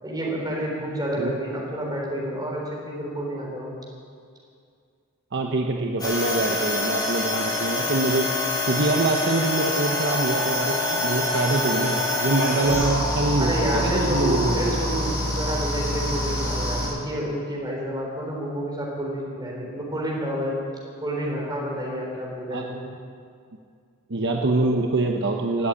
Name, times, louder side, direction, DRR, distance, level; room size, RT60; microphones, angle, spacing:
voice 1, 0.0-3.8 13.4-20.6 21.0-22.8, equal, 20° right, -3 dB, 3.9 m, -29 dB
voice 2, 5.3-8.3 8.6-14.7 22.5-22.7 24.1-25.7, right 2 dB, 55° right, 2 dB, 0.9 m, -24 dB
sound 1, 6.0-16.9, left 2 dB, 20° left, 4.8 m, -26 dB
sound 2, 7.7-15.2, left 1 dB, 80° left, 5.4 m, -32 dB
17.0 x 7.9 x 9.8 m, 2.2 s
head